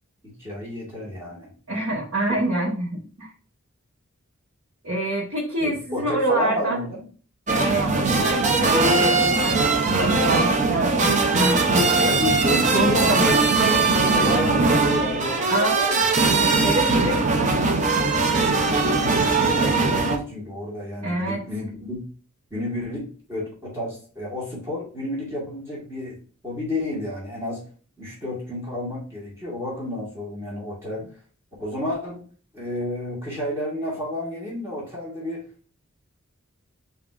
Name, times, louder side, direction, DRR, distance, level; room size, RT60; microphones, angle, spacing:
voice 1, 0.2-1.5 5.6-7.0 12.0-13.4 14.1-16.2 18.5-22.0 22.5-27.7 28.0-31.1 31.6-32.3 32.5-35.7, left 1 dB, 10° right, -6 dB, 1.7 m, -31 dB
voice 2, 1.7-3.3 4.8-6.8 7.5-12.2 12.7-13.3 15.5-15.8 16.4-17.7 21.0-21.4, right 1 dB, 80° right, -7 dB, 1.3 m, -27 dB
sound 1, 7.5-20.2, right 3 dB, 35° right, 0.5 m, -20 dB
7.2 x 2.8 x 2.4 m, 0.40 s
head